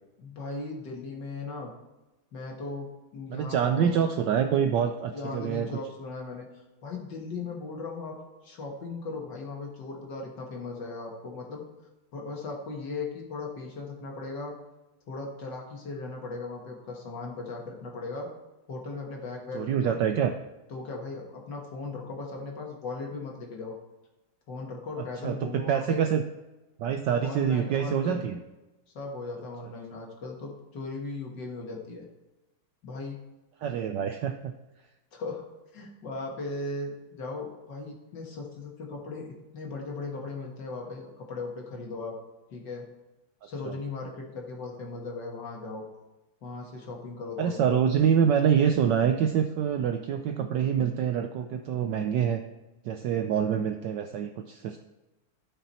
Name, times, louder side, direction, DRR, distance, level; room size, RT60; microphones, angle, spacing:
voice 1, 0.2-1.7 2.3-4.0 5.1-8.2 8.4-11.6 12.1-14.6 15.1-18.3 18.7-20.0 20.7-23.8 24.5-26.0 27.2-28.3 28.9-32.1 32.8-33.2 35.1-35.5 35.7-42.2 42.5-42.9 43.4-45.9 46.4-47.8, left 3 dB, 55° left, 0 dB, 2.1 m, -37 dB
voice 2, 3.3-5.7 19.5-20.3 25.2-26.2 26.8-28.4 33.6-34.5 43.6-43.7 47.4-52.4 52.8-54.8, right 8 dB, 75° right, 7 dB, 1.0 m, -26 dB
12.5 x 5.9 x 4.2 m, 1.1 s
omnidirectional pair, 2.4 m